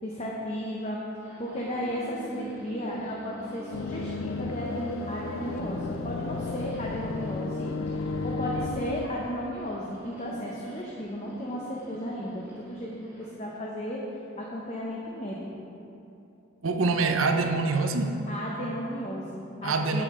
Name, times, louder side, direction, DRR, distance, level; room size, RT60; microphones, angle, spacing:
voice 1, 0.0-1.0 1.4-14.0 14.4-15.4 18.3-20.0, equal, 30° left, -3 dB, 0.7 m, -34 dB
sound 1, 1.2-13.4, right 1 dB, 10° right, 1.2 m, -46 dB
sound 2, 3.7-9.1, left 3 dB, 90° left, 0.4 m, -33 dB
voice 2, 16.6-18.2 19.6-20.0, right 3 dB, 80° right, 5 dB, 0.7 m, -25 dB
9.6 x 7.3 x 3.6 m, 2.8 s
head